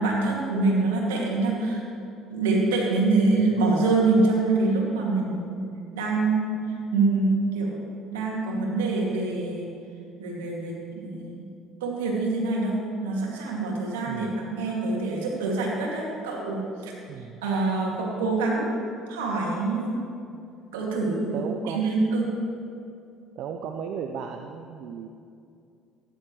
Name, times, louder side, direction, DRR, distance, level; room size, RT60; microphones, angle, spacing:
voice 1, 0.0-1.8 2.3-5.7 5.9-6.6 6.9-9.7 10.2-11.4 11.8-16.9 17.4-18.8 19.1-20.0 20.7-22.2, right 3 dB, 85° right, -2 dB, 2.3 m, -25 dB
voice 2, 14.1-14.5 17.1-17.4 21.3-21.9 23.4-25.1, right 7 dB, 65° right, 5 dB, 0.6 m, -35 dB
16.0 x 10.5 x 3.2 m, 2.5 s
hypercardioid pair, 65°, 0 cm